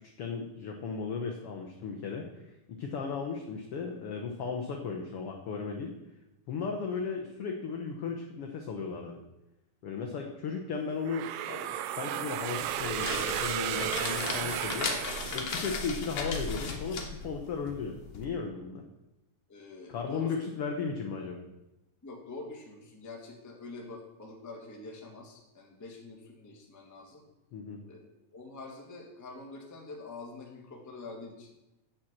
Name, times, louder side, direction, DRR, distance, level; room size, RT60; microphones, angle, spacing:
voice 1, 0.2-5.9 6.5-9.2 9.8-14.9 15.3-18.8 19.9-21.4 27.5-27.8, left 5 dB, 80° left, 2 dB, 1.3 m, -36 dB
sound 1, 11.1-16.0, right 11 dB, 80° right, 2.2 m, -34 dB
sound 2, 12.6-18.2, left 4 dB, 55° left, 1.9 m, -36 dB
voice 2, 19.5-20.3 22.0-27.2 27.8-31.5, left 3 dB, 10° left, 0 dB, 0.7 m, -45 dB
7.8 x 7.3 x 7.4 m, 0.94 s
omnidirectional pair, 3.9 m